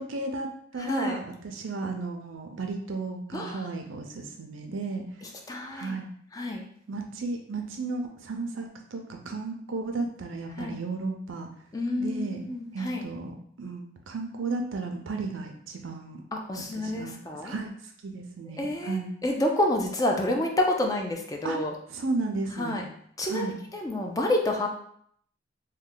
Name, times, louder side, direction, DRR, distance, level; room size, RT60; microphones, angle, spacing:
voice 1, 0.0-5.0 5.7-6.1 6.9-11.5 12.0-12.4 12.7-16.2 16.7-19.1 21.4-21.6 21.9-22.8 23.3-23.5, right 3 dB, 85° right, 4 dB, 0.5 m, -34 dB
voice 2, 0.8-1.2 3.3-3.7 5.5-6.0 6.3-6.6 10.6-10.8 11.7-13.0 16.3-17.5 18.6-21.7 22.6-22.9 23.2-24.7, left 1 dB, 20° left, 1 dB, 0.4 m, -29 dB
3.1 x 2.2 x 3.8 m, 0.66 s
head